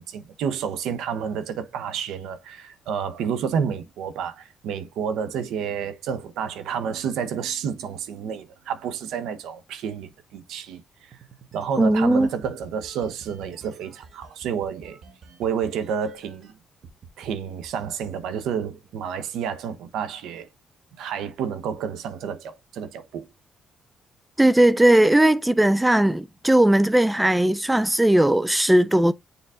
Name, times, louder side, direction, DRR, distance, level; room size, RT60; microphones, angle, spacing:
voice 1, 0.0-11.1 11.5-15.0 15.4-16.5 17.2-20.5 21.0-23.3, right 7 dB, 85° right, 1.0 m, -30 dB
sound 1, 11.1-16.5 16.8-17.3 17.6-19.1, right 5 dB, 55° right, 1.6 m, -49 dB
voice 2, 11.8-12.3 24.4-29.1, right 1 dB, 10° right, 0.3 m, -18 dB
7.1 x 3.8 x 3.7 m
cardioid pair, 90°, 0 cm